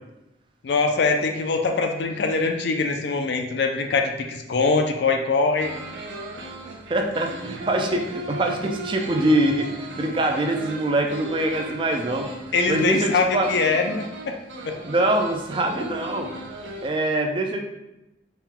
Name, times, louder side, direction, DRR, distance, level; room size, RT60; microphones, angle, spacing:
voice 1, 0.6-5.7 12.5-14.4 14.6-14.8, left 4 dB, 65° left, 4 dB, 0.4 m, -23 dB
sound 1, 5.6-16.9, right 1 dB, 75° right, 0.5 m, -37 dB
voice 2, 6.9-12.3 12.7-13.5 14.8-16.3 16.8-17.6, right 1 dB, 25° right, 3 dB, 0.4 m, -24 dB
4.4 x 2.2 x 3.7 m, 0.93 s
head